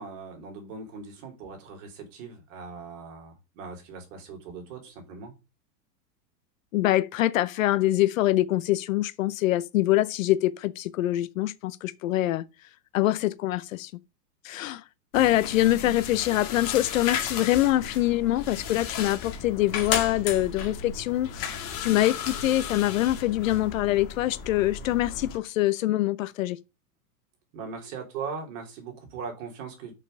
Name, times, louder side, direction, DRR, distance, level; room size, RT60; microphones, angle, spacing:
voice 1, 0.0-5.3 27.5-30.0, right 5 dB, 50° right, 3.7 m, -39 dB
voice 2, 6.7-12.4 12.9-13.9 14.4-14.8 15.1-26.6, left 15 dB, 55° left, 0.7 m, -24 dB
sound 1, 15.1-25.4, left 7 dB, 30° left, 2.0 m, -35 dB
6.6 x 6.3 x 5.3 m
supercardioid pair, 160°, 48 cm